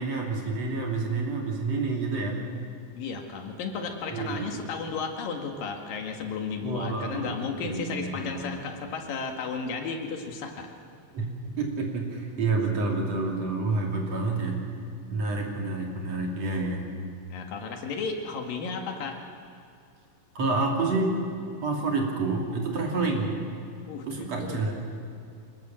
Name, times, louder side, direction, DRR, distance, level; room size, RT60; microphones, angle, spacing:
voice 1, 0.0-2.5 4.1-4.5 6.6-8.6 11.1-14.6 15.1-16.9 20.4-21.2 21.6-23.3 24.1-24.7, right 3 dB, 50° right, 0 dB, 3.9 m, -29 dB
voice 2, 3.0-10.7 17.3-19.2 23.9-24.7, left 5 dB, 90° left, 3 dB, 3.7 m, -34 dB
25.0 x 20.0 x 7.6 m, 2.5 s
omnidirectional pair, 3.8 m